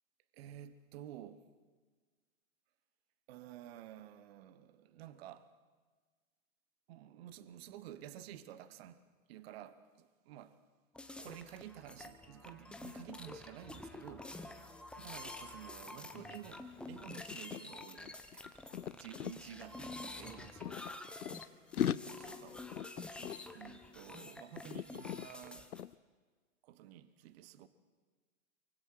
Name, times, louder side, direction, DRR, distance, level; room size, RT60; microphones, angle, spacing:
voice 1, 0.3-1.5 3.3-5.5 6.9-9.0 9.3-10.6 11.2-18.5 18.9-21.0 21.4-22.6 23.5-25.7 26.6-27.7, right 11 dB, 45° right, 1.1 m, -52 dB
sound 1, 10.9-25.8, left 2 dB, ahead, 0.9 m, -49 dB
sound 2, 16.1-16.3 16.6-19.4 20.2-21.5 21.7-24.3 24.6-25.3 25.7-26.0, left 10 dB, 90° left, 0.5 m, -40 dB
24.5 x 23.5 x 4.7 m
hypercardioid pair, 115°, 43 cm